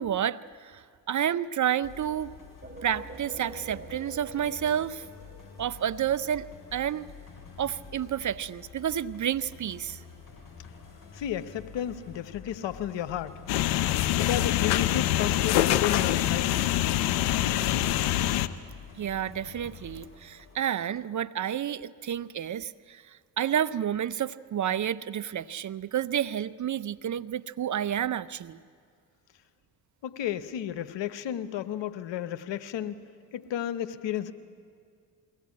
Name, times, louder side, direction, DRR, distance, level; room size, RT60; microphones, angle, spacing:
voice 1, 0.0-2.3 2.8-5.1 5.6-6.5 6.7-7.1 7.6-10.0 19.0-28.6, right 9 dB, 40° right, 14 dB, 0.6 m, -30 dB
sound 1, 1.8-21.0, left 6 dB, 45° left, 7.3 m, -48 dB
sound 2, 2.6-6.2, right 2 dB, 20° right, 2.8 m, -46 dB
voice 2, 11.1-13.4 14.2-16.6 30.0-33.0 33.3-34.3, left 10 dB, 65° left, 11 dB, 1.1 m, -33 dB
sound 3, 13.5-18.5, left 13 dB, 90° left, 0.7 m, -25 dB
22.5 x 17.0 x 8.5 m, 2.2 s
hypercardioid pair, 45°, 47 cm